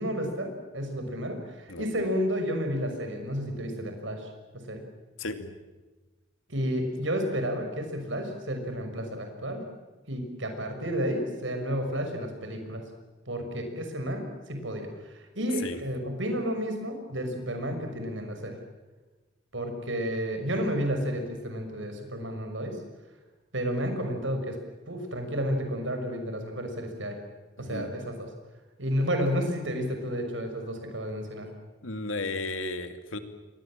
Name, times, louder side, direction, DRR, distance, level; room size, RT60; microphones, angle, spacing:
voice 1, 0.0-4.3 4.7-4.8 6.5-9.6 10.1-12.8 13.3-18.6 19.5-22.8 23.5-24.6 24.9-27.2 27.6-28.3 28.8-31.5, equal, 70° right, 5 dB, 6.1 m, -31 dB
voice 2, 5.2-5.6 15.6-15.8 27.6-27.9 31.8-33.2, left 2 dB, 85° left, 8 dB, 2.7 m, -34 dB
29.0 x 22.5 x 7.6 m, 1.2 s
head